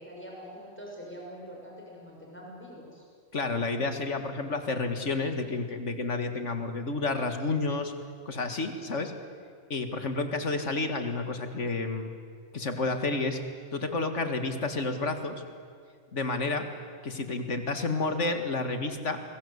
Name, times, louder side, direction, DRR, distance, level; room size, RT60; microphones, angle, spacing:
voice 1, 0.0-3.0, equal, 10° left, -3 dB, 6.2 m, -44 dB
voice 2, 3.3-7.9 8.3-9.1 9.7-12.1 12.5-13.4 13.7-15.4 16.1-16.7 17.0-19.2, left 3 dB, 70° left, 7 dB, 2.3 m, -30 dB
28.5 x 21.5 x 8.2 m, 2.1 s
omnidirectional pair, 1.3 m